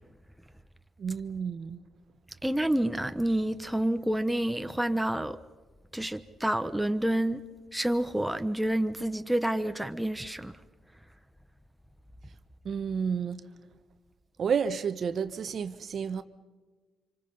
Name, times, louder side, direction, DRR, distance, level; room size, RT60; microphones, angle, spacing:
voice 1, 1.0-1.8 12.6-13.4 14.4-16.2, right 6 dB, 55° right, 1.0 m, -31 dB
voice 2, 2.4-5.4 5.9-7.4 7.7-10.6, right 1 dB, 5° right, 0.9 m, -28 dB
26.0 x 25.5 x 5.5 m
cardioid pair, 90°, 0 cm